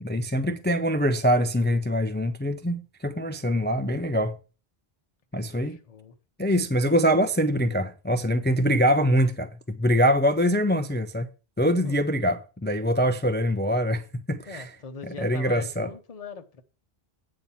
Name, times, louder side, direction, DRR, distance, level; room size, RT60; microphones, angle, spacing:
voice 1, 0.0-4.4 5.3-5.8 6.4-11.3 11.6-14.7 15.2-15.9, equal, 15° left, 0.3 m, -24 dB
voice 2, 5.6-6.1 11.8-12.0 14.5-16.6, left 5 dB, 40° left, 0.9 m, -41 dB
8.7 x 4.1 x 7.1 m
omnidirectional pair, 1.1 m